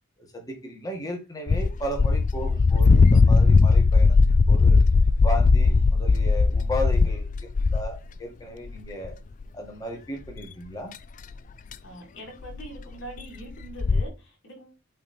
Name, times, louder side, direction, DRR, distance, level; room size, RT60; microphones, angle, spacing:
voice 1, 0.2-4.2 4.5-4.8 5.2-9.2 9.5-10.9, equal, 15° left, 1.9 m, -35 dB
sound 1, 1.5-8.0 8.7-9.1 9.4-9.5 10.3-10.4 11.3-11.4 11.7-11.8 12.4-12.7 12.9-13.0 13.2-13.3 13.6-14.0, left 4 dB, 40° left, 0.4 m, -18 dB
voice 2, 11.8-14.7, right 1 dB, 60° left, 4.0 m, -43 dB
8.6 x 3.2 x 4.4 m
head